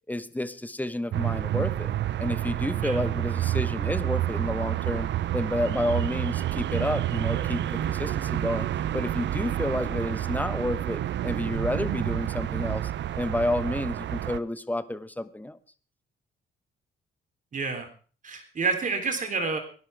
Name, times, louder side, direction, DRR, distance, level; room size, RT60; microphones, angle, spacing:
voice 1, 0.1-1.9 2.2-5.1 5.3-8.7 8.9-12.9 13.2-15.6, left 1 dB, 10° left, 1.2 m, -30 dB
sound 1, 1.1-14.4, right 12 dB, 65° right, 0.7 m, -29 dB
voice 2, 17.5-17.9 18.2-19.6, right 4 dB, 40° right, 3.5 m, -29 dB
23.0 x 11.5 x 3.6 m
cardioid pair, 90°, 20 cm